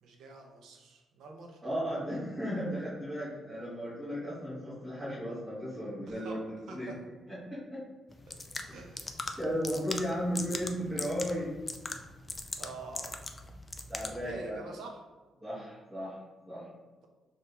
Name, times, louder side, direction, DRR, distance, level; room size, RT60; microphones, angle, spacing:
voice 1, 0.0-1.6 2.3-2.4 6.1-7.0 8.7-9.1 10.2-10.4 12.6-13.2 14.2-15.1, right 3 dB, 70° right, 1 dB, 0.8 m, -46 dB
voice 2, 1.6-6.9 7.3-7.8 9.4-11.5 13.9-14.6 15.4-16.2 16.5-16.6, equal, 5° right, -13 dB, 1.4 m, -35 dB
sound 1, 8.1-14.3, left 2 dB, 15° left, 0.3 m, -41 dB
5.8 x 2.6 x 3.4 m, 1.3 s
cardioid pair, 175°, 0 cm